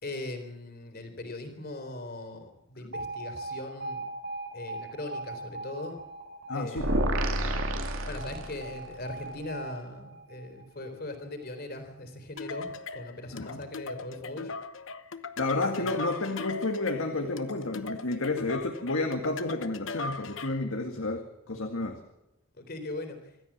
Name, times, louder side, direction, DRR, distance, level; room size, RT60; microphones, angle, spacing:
voice 1, 0.0-4.0 4.5-6.0 6.5-7.0 8.1-14.5 15.8-16.0 22.6-23.3, left 2 dB, 50° left, 7 dB, 3.7 m, -40 dB
Alarm, 2.9-11.0, right 2 dB, 60° right, 7.9 m, -40 dB
voice 2, 6.5-7.0 13.3-13.6 15.4-22.0, left 2 dB, 85° left, 4 dB, 2.1 m, -31 dB
sound 1, 6.8-8.9, right 1 dB, 75° right, 2.6 m, -29 dB
sound 2, 12.4-20.7, left 3 dB, 65° left, 1.0 m, -39 dB
26.0 x 13.5 x 7.4 m, 0.90 s
head